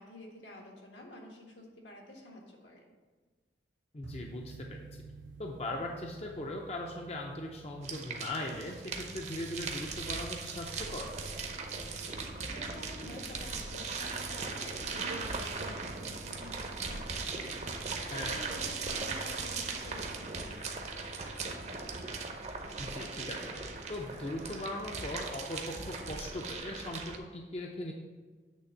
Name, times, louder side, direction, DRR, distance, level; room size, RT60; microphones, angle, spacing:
voice 1, 0.0-2.9 12.5-17.8 18.0-20.8 21.2-21.5, left 1 dB, 80° left, -1 dB, 1.6 m, -50 dB
voice 2, 3.9-4.8 5.4-11.1 18.1-18.5 22.8-27.9, left 1 dB, 35° left, 1 dB, 0.6 m, -39 dB
sound 1, 4.0-14.8, right 4 dB, 85° right, 0.5 m, -54 dB
sound 2, 7.8-27.2, right 4 dB, 35° right, 0.7 m, -39 dB
8.4 x 3.6 x 6.6 m, 1.4 s
head